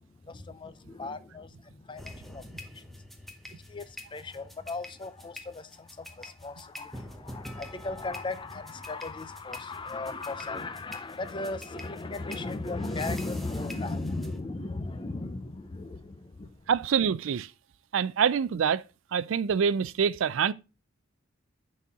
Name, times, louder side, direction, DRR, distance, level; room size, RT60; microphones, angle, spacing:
voice 1, 0.0-2.9 3.5-16.6, left 3 dB, 25° left, 0.5 m, -37 dB
sound 1, 2.0-14.4, left 1 dB, ahead, 0.8 m, -46 dB
voice 2, 16.7-17.5 17.9-18.8 19.1-20.5, right 7 dB, 70° right, 0.4 m, -25 dB
9.8 x 4.3 x 3.6 m
head